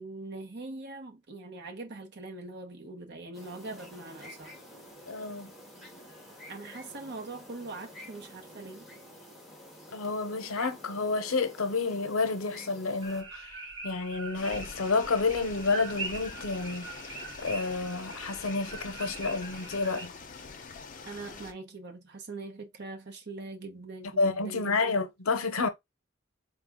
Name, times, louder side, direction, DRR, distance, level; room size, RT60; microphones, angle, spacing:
voice 1, 0.0-4.6 6.5-8.9 21.1-24.9, right 3 dB, 55° right, 0.8 m, -42 dB
sound 1, 3.3-13.2, equal, ahead, 1.1 m, -50 dB
voice 2, 5.1-5.5 9.9-13.5 13.8-16.9 17.4-20.1 24.2-25.7, left 4 dB, 90° left, 0.7 m, -29 dB
sound 2, 13.0-20.1, right 3 dB, 25° right, 2.9 m, -42 dB
sound 3, 14.3-21.5, left 4 dB, 40° left, 0.6 m, -45 dB
4.2 x 2.3 x 3.5 m
head